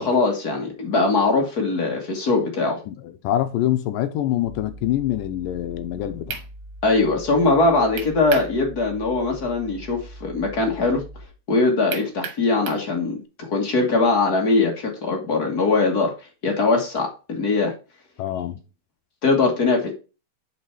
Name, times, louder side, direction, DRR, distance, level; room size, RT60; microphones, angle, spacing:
voice 1, 0.0-2.8 6.8-11.0 11.5-16.1 16.4-17.7 19.2-19.9, left 3 dB, 45° left, 1.2 m, -21 dB
voice 2, 2.9-6.4 18.2-18.6, left 12 dB, 80° left, 2.2 m, -25 dB
sound 1, 4.4-11.3, equal, 70° right, 0.7 m, -42 dB
sound 2, 5.9-6.0 6.3-6.5 8.0-8.5 8.9-9.0 11.9-12.9, right 7 dB, 85° right, 3.1 m, -32 dB
5.9 x 5.6 x 4.6 m
omnidirectional pair, 4.2 m